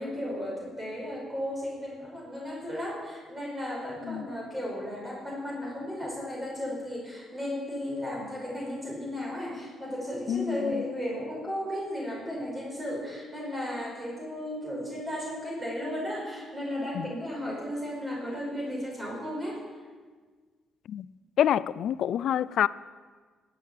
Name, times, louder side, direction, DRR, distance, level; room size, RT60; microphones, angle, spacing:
voice 1, 0.0-19.6, left 1 dB, 20° right, 5.6 m, -34 dB
voice 2, 21.4-22.7, left 10 dB, 70° left, 0.4 m, -26 dB
19.5 x 8.7 x 7.4 m
cardioid pair, 90°, 0 cm